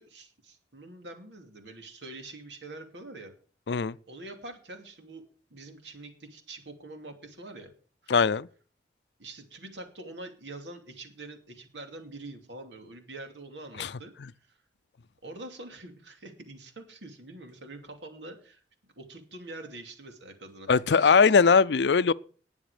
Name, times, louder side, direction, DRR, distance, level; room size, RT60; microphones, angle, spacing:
voice 1, 0.0-3.3 4.1-5.2 5.5-7.7 8.0-8.1 9.2-14.1 14.4-14.6 15.2-21.1, right 2 dB, 85° right, 2.7 m, -45 dB
voice 2, 8.1-8.5 13.8-13.9 20.7-22.1, left 5 dB, 75° left, 0.5 m, -20 dB
19.5 x 7.2 x 5.0 m
head